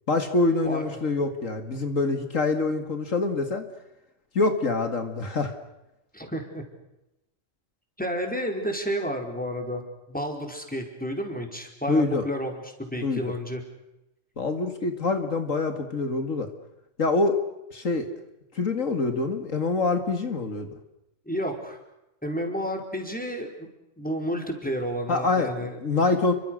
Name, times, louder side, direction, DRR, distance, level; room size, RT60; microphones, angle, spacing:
voice 1, 0.1-3.7 4.3-5.5 11.9-12.2 13.0-13.3 14.4-16.5 17.0-17.4 17.7-18.1 18.5-20.7 25.1-25.5 25.8-26.3, left 3 dB, 75° left, 7 dB, 2.5 m, -25 dB
voice 2, 6.1-6.6 8.0-9.8 10.1-13.6 21.2-21.8 22.2-23.7 24.0-26.0, equal, 5° left, 3 dB, 4.9 m, -31 dB
30.0 x 25.0 x 6.6 m, 0.92 s
omnidirectional pair, 1.4 m